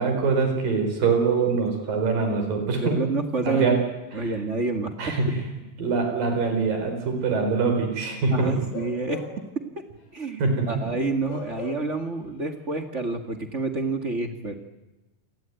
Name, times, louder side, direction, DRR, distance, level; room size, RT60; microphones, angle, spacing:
voice 1, 0.0-3.0 3.5-3.7 4.2-4.3 5.0-5.4 5.8-8.5 10.4-10.7, right 4 dB, 70° right, 5 dB, 5.9 m, -24 dB
voice 2, 2.9-3.8 4.1-5.2 8.3-9.3 9.7-9.8 10.1-14.5, right 3 dB, 30° right, 7 dB, 1.3 m, -28 dB
Bark / Livestock farm animals working animals, 8.6-9.6 10.0-10.1 11.3-12.1 12.4-12.6, left 6 dB, 85° left, 5.9 m, -38 dB
28.0 x 19.5 x 9.2 m, 1.0 s
omnidirectional pair, 4.2 m